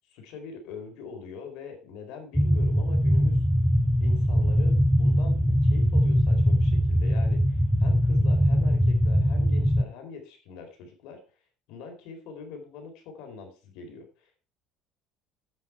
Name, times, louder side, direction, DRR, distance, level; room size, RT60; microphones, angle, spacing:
voice 1, 0.1-3.4 4.0-11.2 11.7-14.5, left 5 dB, 70° left, 4 dB, 3.9 m, -43 dB
sound 1, 2.3-9.8, equal, ahead, 0.5 m, -22 dB
9.5 x 8.3 x 4.6 m, 0.36 s
cardioid pair, 155°, 0 cm